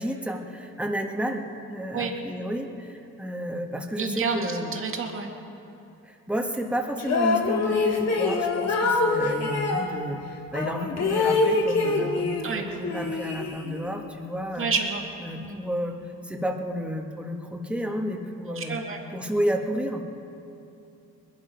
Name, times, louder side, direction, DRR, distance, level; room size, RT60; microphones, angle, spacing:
voice 1, 0.0-1.4 1.7-4.7 6.0-10.2 10.5-14.7 15.2-16.0 16.2-18.8 19.1-20.0, equal, 5° right, 2 dB, 1.6 m, -31 dB
voice 2, 4.0-5.3 9.4-9.5 12.4-12.6 14.6-15.0 15.4-15.6 18.6-19.0, right 4 dB, 45° right, 2 dB, 2.2 m, -29 dB
sound 1, 7.0-9.9 10.5-12.5 12.8-13.9, left 3 dB, 60° left, 2.4 m, -25 dB
21.0 x 11.5 x 5.3 m, 2.7 s
cardioid pair, 90°, 30 cm